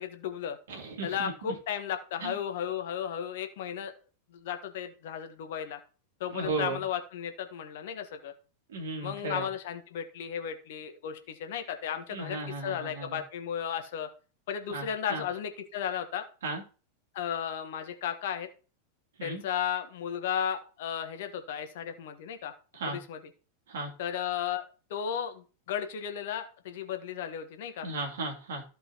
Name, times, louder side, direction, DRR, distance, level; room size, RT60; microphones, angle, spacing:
voice 1, 0.0-0.6 1.0-3.9 4.3-5.8 6.2-8.3 9.0-14.1 14.5-16.2 17.1-18.5 19.2-22.5 22.9-23.2 24.0-24.6 24.9-27.9, left 8 dB, 55° left, 7 dB, 1.4 m, -34 dB
voice 2, 0.7-1.5 2.2-2.4 6.3-6.8 8.7-9.5 12.1-13.2 14.7-15.2 16.4-16.6 19.2-19.4 22.7-23.0 23.7-23.9 27.8-28.6, right 3 dB, 60° right, 1 dB, 2.8 m, -35 dB
14.5 x 5.3 x 3.0 m, 0.36 s
figure-of-eight pair, 90°, 0 cm